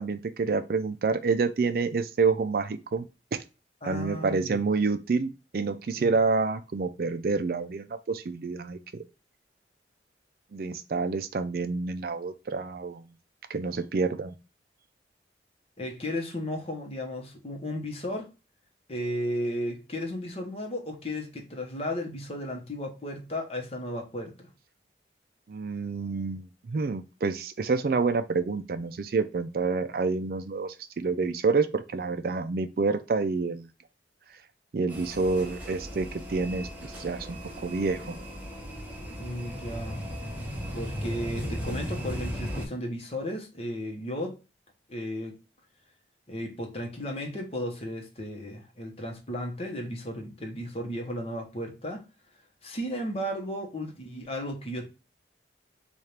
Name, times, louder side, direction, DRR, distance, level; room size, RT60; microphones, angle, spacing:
voice 1, 0.0-3.4 3.8-8.8 10.5-13.0 13.5-14.3 25.5-33.7 34.7-36.7 36.9-37.4 37.6-38.2, right 4 dB, 55° right, 0.4 m, -28 dB
voice 2, 3.8-4.7 6.0-6.2 15.8-18.3 18.9-24.5 39.2-40.0 40.7-44.4 44.9-45.4 46.3-52.0 52.6-54.9, equal, 35° left, 0.9 m, -34 dB
sound 1, 34.9-42.7, equal, 10° right, 1.0 m, -36 dB
4.3 x 2.4 x 3.2 m
head